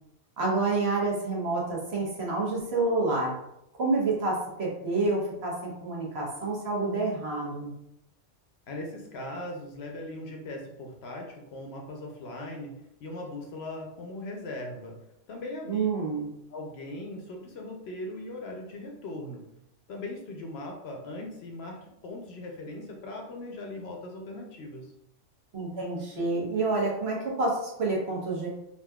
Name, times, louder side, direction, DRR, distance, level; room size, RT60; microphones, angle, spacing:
voice 1, 0.4-3.3 3.8-7.7 15.7-16.3 25.5-28.5, right 3 dB, 60° right, -4 dB, 1.2 m, -28 dB
voice 2, 8.7-12.7 13.0-15.0 15.3-15.9 16.5-19.4 19.9-24.9, left 1 dB, 65° left, 1 dB, 0.8 m, -39 dB
3.6 x 2.7 x 2.3 m, 0.82 s
omnidirectional pair, 1.2 m